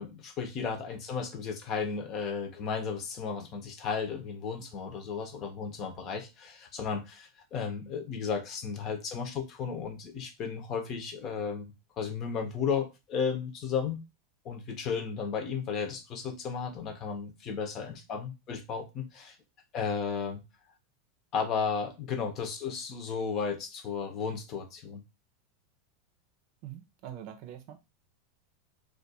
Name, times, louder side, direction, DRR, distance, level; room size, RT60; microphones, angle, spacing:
voice 1, 0.0-14.0 14.4-19.4 19.7-20.4 21.3-25.0, left 6 dB, 45° left, 0.8 m, -34 dB
voice 2, 26.6-27.8, right 11 dB, 60° right, 0.6 m, -44 dB
2.4 x 2.3 x 4.0 m
hypercardioid pair, 105°, 0 cm